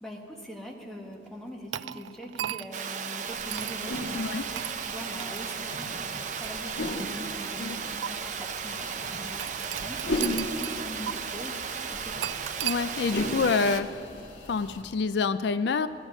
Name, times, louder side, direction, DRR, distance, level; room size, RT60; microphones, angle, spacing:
voice 1, 0.0-10.2 10.5-12.3, equal, ahead, 0 dB, 1.4 m, -43 dB
sound 1, 1.7-2.9 3.5-3.8 4.6-4.8 5.2-5.4 6.1-7.3 8.0-8.1 9.4-10.8 11.1-11.2 12.2-12.8, right 12 dB, 90° right, 0.3 m, -35 dB
Water, 2.7-13.8, right 6 dB, 40° right, 0.6 m, -35 dB
sound 2, 3.3-14.8, left 1 dB, 85° left, 1.7 m, -38 dB
voice 2, 4.1-4.5 7.6-7.8 10.2-10.5 12.6-13.9 14.5-15.9, left 4 dB, 65° left, 13 dB, 0.4 m, -27 dB
16.0 x 11.0 x 6.2 m, 2.9 s
head